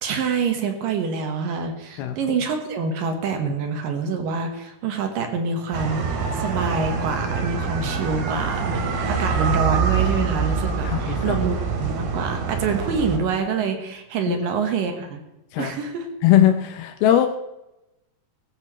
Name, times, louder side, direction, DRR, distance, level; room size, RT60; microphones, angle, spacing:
voice 1, 0.0-15.2 15.6-16.1, right 5 dB, 70° right, 5 dB, 2.8 m, -26 dB
sound 1, 5.7-13.2, right 5 dB, 85° right, 3.8 m, -25 dB
voice 2, 10.8-11.4 14.3-14.4 15.5-15.7 16.2-17.3, left 11 dB, 80° left, 7 dB, 2.6 m, -19 dB
18.0 x 14.5 x 3.1 m, 0.93 s
omnidirectional pair, 4.5 m